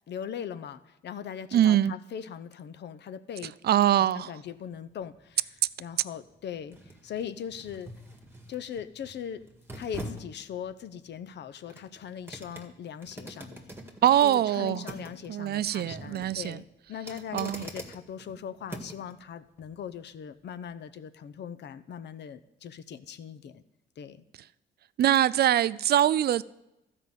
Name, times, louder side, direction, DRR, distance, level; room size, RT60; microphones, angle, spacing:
voice 1, 0.1-3.5 4.1-5.5 5.8-6.8 7.0-7.9 8.5-9.4 9.8-13.6 14.2-23.6 24.0-24.2, left 8 dB, 60° left, 0.7 m, -40 dB
voice 2, 1.5-1.9 3.6-4.3 14.0-14.9 15.3-16.6 17.3-17.7 25.0-26.4, right 11 dB, 55° right, 0.4 m, -23 dB
sound 1, 4.4-19.1 19.6-19.7, right 1 dB, 10° right, 1.8 m, -46 dB
13.0 x 5.4 x 8.1 m
cardioid pair, 90°, 20 cm